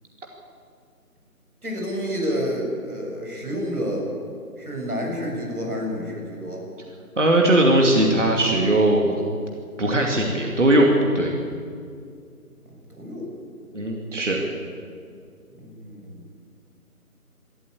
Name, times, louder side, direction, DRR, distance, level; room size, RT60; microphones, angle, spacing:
voice 1, 1.6-4.1 4.6-6.7 12.9-13.3 15.6-16.3, equal, 75° right, 0 dB, 7.0 m, -29 dB
voice 2, 7.2-9.2 9.8-11.3 13.7-14.4, right 1 dB, 50° right, 0 dB, 2.6 m, -19 dB
22.5 x 14.0 x 8.6 m, 2.3 s
figure-of-eight pair, 160°, 45 cm